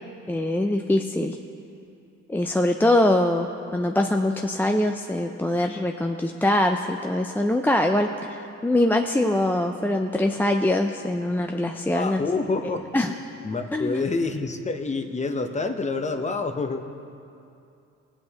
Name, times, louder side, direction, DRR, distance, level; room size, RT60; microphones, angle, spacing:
voice 1, 0.3-1.4 2.3-12.2 12.9-13.1 13.7-14.0, left 1 dB, 5° left, 3 dB, 0.3 m, -23 dB
voice 2, 11.9-12.9 13.4-16.9, left 3 dB, 25° left, 6 dB, 0.8 m, -27 dB
19.0 x 7.6 x 2.8 m, 2.6 s
cardioid pair, 90°, 30 cm